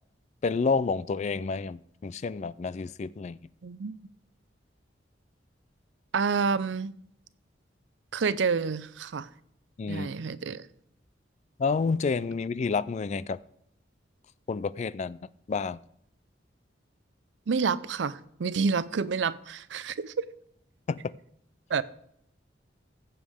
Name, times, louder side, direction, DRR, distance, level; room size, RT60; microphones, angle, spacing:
voice 1, 0.4-3.4 9.8-10.1 11.6-13.4 14.5-15.2 15.5-15.8 20.9-21.0, left 4 dB, 40° left, 19 dB, 0.3 m, -29 dB
voice 2, 3.6-3.9 6.1-6.9 8.1-9.3 9.9-10.7 17.5-20.2 21.7-21.8, right 5 dB, 80° right, 17 dB, 0.5 m, -28 dB
15.0 x 7.1 x 3.6 m, 0.72 s
head